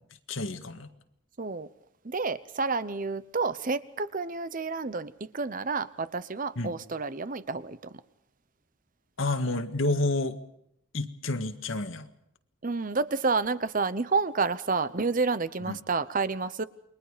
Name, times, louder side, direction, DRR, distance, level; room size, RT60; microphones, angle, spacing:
voice 1, 0.3-0.9 6.6-6.7 9.2-10.4 10.9-12.1 15.7-15.8, left 2 dB, 70° left, 1.8 m, -29 dB
voice 2, 1.4-1.7 2.0-8.0 12.6-16.6, right 4 dB, 40° right, 0.8 m, -29 dB
29.0 x 22.5 x 5.1 m
head